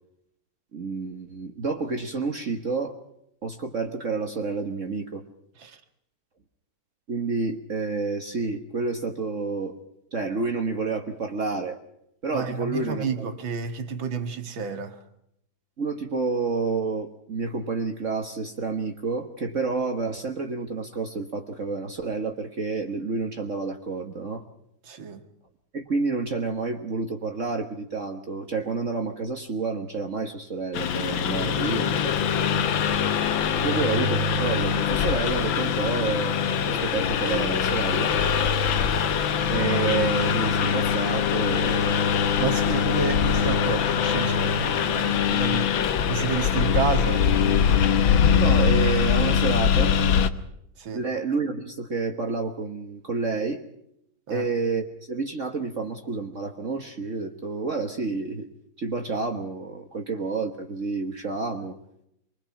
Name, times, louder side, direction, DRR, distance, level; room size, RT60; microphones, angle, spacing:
voice 1, 0.7-3.0 3.4-5.2 7.1-9.7 10.1-11.8 12.2-13.3 15.8-24.4 25.7-32.2 33.6-36.4 36.6-38.2 39.5-42.1 48.3-49.9 50.9-53.6 54.3-58.5 58.8-61.8, right 4 dB, 40° right, 1.7 m, -29 dB
voice 2, 12.3-15.0 24.9-25.2 31.7-31.8 33.6-33.8 42.2-47.2 50.8-51.0 54.3-54.5, right 5 dB, 85° right, 2.6 m, -30 dB
Engine, 30.7-50.3, left 7 dB, 80° left, 1.8 m, -23 dB
26.5 x 21.0 x 5.9 m
omnidirectional pair, 2.1 m